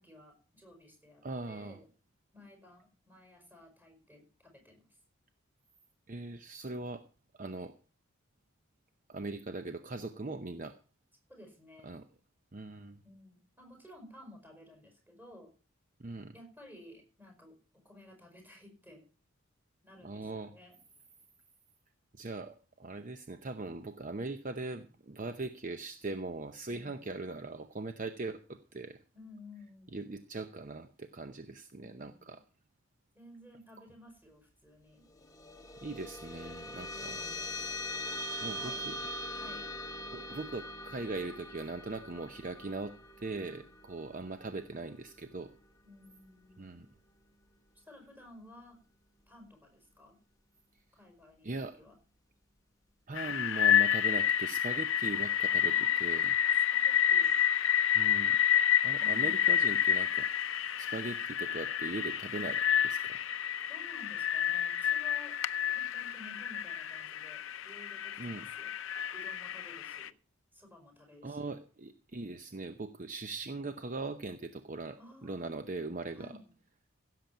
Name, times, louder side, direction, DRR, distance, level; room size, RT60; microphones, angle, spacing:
voice 1, 0.0-1.9 2.3-5.0 11.3-12.0 13.0-15.5 16.3-19.1 19.8-20.8 26.7-27.1 29.1-30.1 31.8-32.4 33.2-35.1 36.9-37.7 38.6-38.8 39.3-39.7 43.5-44.1 45.8-46.8 47.8-48.8 49.3-50.2 50.9-52.0 55.7-57.3 59.0-59.8 63.7-65.4 65.7-68.7 69.1-70.2 70.5-71.5 75.0-75.6 76.1-76.5, left 1 dB, 10° right, 4 dB, 5.1 m, -55 dB
voice 2, 1.2-1.8 6.1-7.1 7.3-7.7 9.1-10.8 11.8-12.0 12.5-13.0 16.0-16.3 20.0-20.5 22.1-29.0 29.9-32.4 35.8-37.2 38.4-38.9 40.1-45.5 46.6-46.9 51.4-51.8 53.1-56.4 57.9-58.4 58.8-60.3 60.8-63.2 68.2-68.5 71.2-76.3, right 3 dB, 40° right, 9 dB, 0.7 m, -40 dB
sound 1, 35.1-45.9, left 1 dB, 15° left, 1.0 m, -42 dB
sound 2, 53.2-70.1, left 9 dB, 65° left, 0.6 m, -29 dB
16.0 x 7.7 x 5.7 m, 0.37 s
head